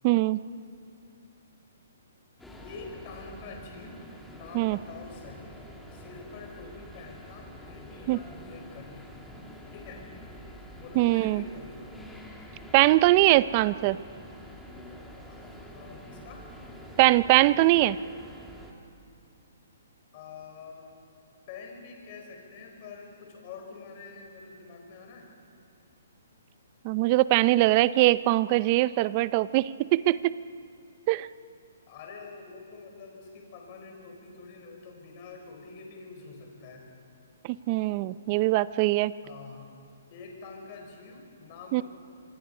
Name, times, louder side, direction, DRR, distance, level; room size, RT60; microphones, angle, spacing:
voice 1, 0.0-0.4 4.5-4.8 8.1-8.2 11.0-11.4 12.7-14.0 17.0-18.0 26.8-30.3 31.1-31.3 37.4-39.1 41.7-41.8, right 17 dB, 25° right, 18 dB, 0.4 m, -22 dB
sound 1, 2.4-18.7, equal, 5° left, 1.7 m, -47 dB
voice 2, 2.6-4.0 4.3-5.6 5.9-9.1 9.7-10.0 10.7-11.9 15.3-15.5 15.7-16.4 20.1-21.0 21.5-25.3 31.9-36.8 39.2-39.7 40.1-41.8, left 4 dB, 30° left, 1 dB, 5.0 m, -46 dB
26.0 x 23.5 x 5.5 m, 2.6 s
hypercardioid pair, 170°, 0 cm